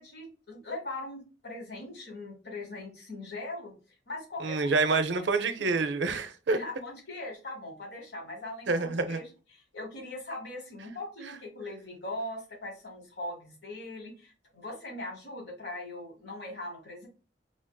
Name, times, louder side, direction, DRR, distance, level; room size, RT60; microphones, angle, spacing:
voice 1, 0.0-3.7 4.1-4.6 5.1-5.3 6.5-17.1, left 2 dB, 60° left, 1.1 m, -40 dB
voice 2, 4.4-6.6 8.7-9.2, right 3 dB, 70° right, 0.5 m, -27 dB
5.0 x 2.5 x 2.2 m
head